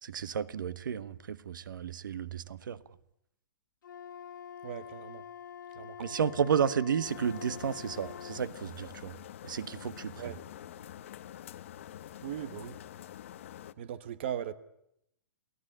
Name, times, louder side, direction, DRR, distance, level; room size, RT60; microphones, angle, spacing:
voice 1, 0.0-2.8 6.0-9.2 9.4-10.3, right 7 dB, 85° right, 1.4 m, -32 dB
Wind instrument woodwind instrument, 3.8-8.5, left 8 dB, 80° left, 2.1 m, -46 dB
voice 2, 4.6-5.2 5.8-6.2 10.2-10.4 12.2-12.8 13.8-14.5, right 9 dB, 35° right, 1.0 m, -39 dB
sound 1, 7.0-13.7, left 11 dB, 40° left, 1.0 m, -47 dB
29.0 x 17.5 x 10.0 m
hypercardioid pair, 180°, 10 cm